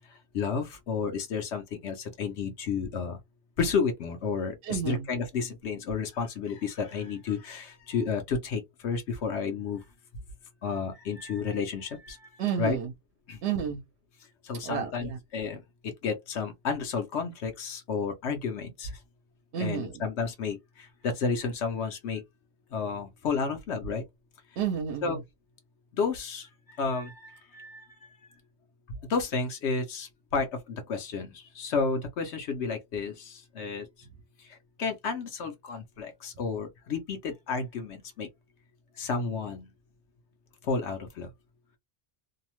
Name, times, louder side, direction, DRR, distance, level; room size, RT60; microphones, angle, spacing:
voice 1, 0.3-3.2 3.6-9.8 10.6-12.2 12.6-12.8 13.3-13.4 14.4-19.0 19.6-22.2 22.7-24.0 25.0-25.2 25.9-26.5 26.8-28.1 29.1-33.9 34.5-38.3 39.0-39.7 40.6-41.3, left 5 dB, 80° left, 1.0 m, -31 dB
voice 2, 4.6-5.1 12.4-12.9 13.4-13.8 14.6-15.2 19.5-20.0 24.6-25.2, right 8 dB, 75° right, 0.9 m, -31 dB
2.7 x 2.0 x 2.9 m
omnidirectional pair, 1.1 m